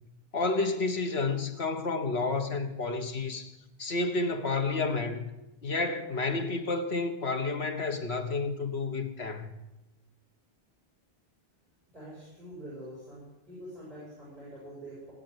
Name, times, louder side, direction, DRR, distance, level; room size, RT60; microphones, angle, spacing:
voice 1, 0.3-3.5 3.8-5.3 5.6-9.5, left 3 dB, 85° left, 1.7 m, -30 dB
voice 2, 11.9-15.1, right 1 dB, 45° right, 7.6 m, -45 dB
19.0 x 8.3 x 8.0 m
omnidirectional pair, 1.0 m